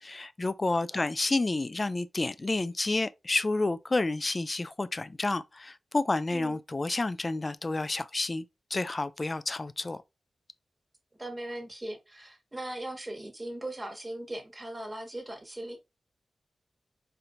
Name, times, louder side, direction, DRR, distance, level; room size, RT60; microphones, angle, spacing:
voice 1, 0.0-8.4 8.7-10.0, left 2 dB, 40° left, 0.3 m, -30 dB
voice 2, 11.2-15.8, right 1 dB, 25° right, 1.4 m, -39 dB
4.3 x 2.6 x 2.5 m
cardioid pair, 45°, 0 cm